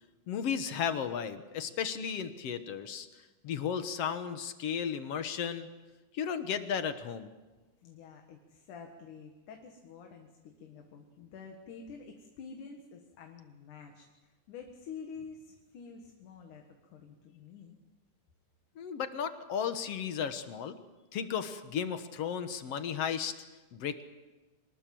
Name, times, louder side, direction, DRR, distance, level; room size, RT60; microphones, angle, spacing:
voice 1, 0.3-3.1 3.4-5.7 6.1-7.3 18.8-20.8 21.1-23.3 23.7-24.0, left 7 dB, 60° left, 10 dB, 2.0 m, -34 dB
voice 2, 7.8-17.8, left 5 dB, 85° left, 3 dB, 3.2 m, -48 dB
26.0 x 19.5 x 7.6 m, 1.2 s
omnidirectional pair, 3.5 m